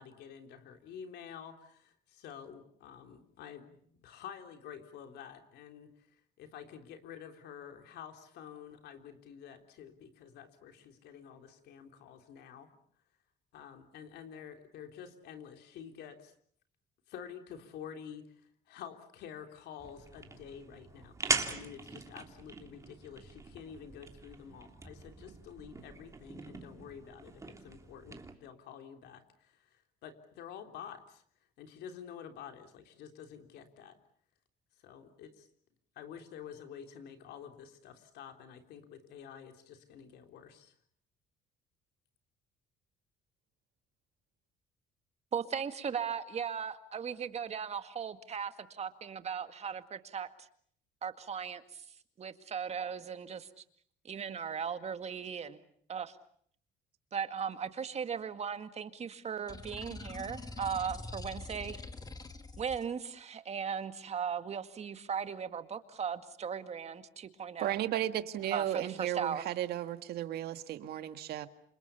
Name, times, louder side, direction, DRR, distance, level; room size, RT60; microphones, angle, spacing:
voice 1, 0.0-12.7 13.5-16.3 17.1-21.2 21.5-31.2 31.6-34.0 34.8-35.5 36.0-40.8, left 8 dB, 75° left, 6 dB, 3.6 m, -49 dB
sound 1, 19.8-28.3, right 3 dB, 20° right, 3.1 m, -41 dB
voice 2, 45.3-50.5 51.0-51.8 52.2-53.6 54.0-55.6 55.9-56.2 57.1-61.8 62.6-67.7 68.5-69.4, right 7 dB, 40° right, 10 dB, 2.0 m, -37 dB
sound 2, 59.5-62.8, left 3 dB, 20° left, 2.1 m, -44 dB
voice 3, 67.6-71.5, right 12 dB, 70° right, 10 dB, 1.8 m, -34 dB
28.5 x 26.0 x 7.0 m, 0.63 s
cardioid pair, 110°, 17 cm